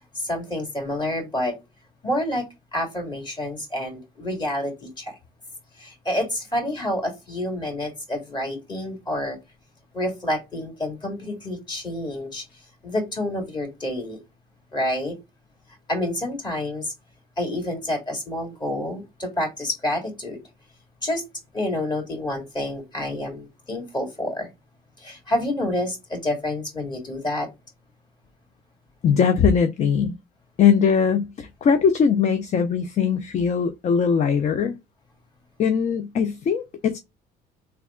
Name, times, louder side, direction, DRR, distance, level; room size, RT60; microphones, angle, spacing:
voice 1, 0.1-1.6 2.0-2.5 2.7-5.2 5.7-9.4 9.9-14.2 14.7-15.1 15.9-16.9 17.4-20.4 21.0-21.2 21.5-24.5 25.0-27.5, left 1 dB, 25° left, 2.3 m, -28 dB
voice 2, 29.0-30.2 30.6-34.8 35.6-37.0, left 6 dB, 45° left, 0.5 m, -20 dB
3.3 x 2.2 x 3.6 m
cardioid pair, 110°, 17 cm